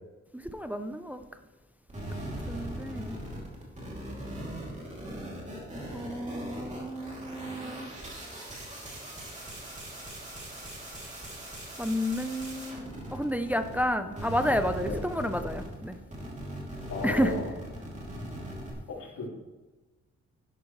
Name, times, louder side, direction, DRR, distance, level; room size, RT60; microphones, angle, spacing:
voice 1, 0.3-1.2 2.5-3.2 5.9-7.9 11.8-16.0 17.0-17.3, equal, 5° right, 8 dB, 0.4 m, -31 dB
sound 1, 1.9-13.9 14.1-18.7, right 1 dB, 25° right, 2.8 m, -40 dB
voice 2, 16.9-17.6 18.9-19.3, left 3 dB, 85° left, -5 dB, 3.9 m, -34 dB
12.0 x 11.5 x 3.2 m, 1.2 s
wide cardioid pair, 160°, 29 cm